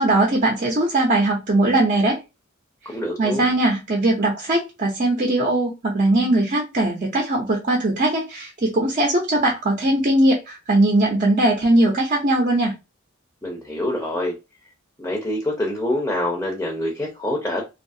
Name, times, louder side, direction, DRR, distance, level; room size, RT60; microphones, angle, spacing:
voice 1, 0.0-2.2 3.2-12.7, right 1 dB, 40° right, 0.6 m, -20 dB
voice 2, 2.9-3.4 13.4-14.3 15.0-17.6, left 1 dB, 10° left, 0.6 m, -25 dB
2.7 x 2.4 x 2.6 m
head